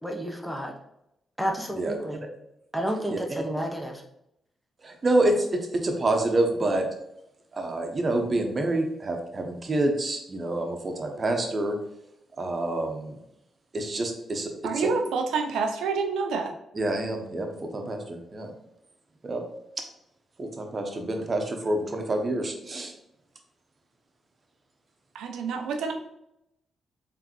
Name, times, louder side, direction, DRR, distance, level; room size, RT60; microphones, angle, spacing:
voice 1, 0.0-0.7 1.4-2.3 2.7-4.0, equal, 5° right, 1 dB, 0.8 m, -31 dB
voice 2, 4.8-6.9 7.5-11.8 12.4-13.2 13.7-14.9 16.7-18.5 19.2-19.4 20.4-22.9, right 2 dB, 45° right, 4 dB, 0.9 m, -27 dB
voice 3, 14.6-16.5 25.1-25.9, right 5 dB, 85° right, 4 dB, 0.5 m, -27 dB
3.8 x 3.4 x 3.0 m, 0.83 s
supercardioid pair, 50°, 0 cm